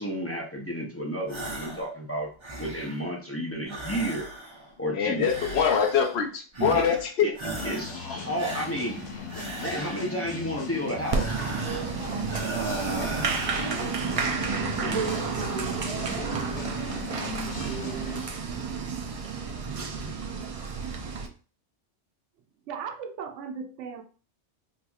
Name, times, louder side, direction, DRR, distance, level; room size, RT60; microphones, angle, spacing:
voice 1, 0.0-2.3 2.6-4.3 4.8-5.3 6.7-6.8 7.2-7.3 7.6-9.0 9.6-11.4, equal, 15° left, -2 dB, 0.5 m, -31 dB
sound 1, 1.3-1.9 2.2-3.1 3.7-4.7 5.2-6.2 6.5-7.1 7.4-8.0 8.4-10.2 11.0-11.9 12.3-13.8, right 2 dB, 30° right, 0.7 m, -36 dB
voice 2, 4.9-7.3 8.0-8.2, left 7 dB, 65° left, 4 dB, 0.8 m, -24 dB
sound 2, 7.5-18.3, left 4 dB, 85° left, 1.1 m, -38 dB
Applause, 11.1-21.3, right 5 dB, 65° right, 0.3 m, -31 dB
voice 3, 22.7-24.0, right 6 dB, 80° right, 7 dB, 0.9 m, -37 dB
3.9 x 2.8 x 2.3 m, 0.38 s
omnidirectional pair, 1.2 m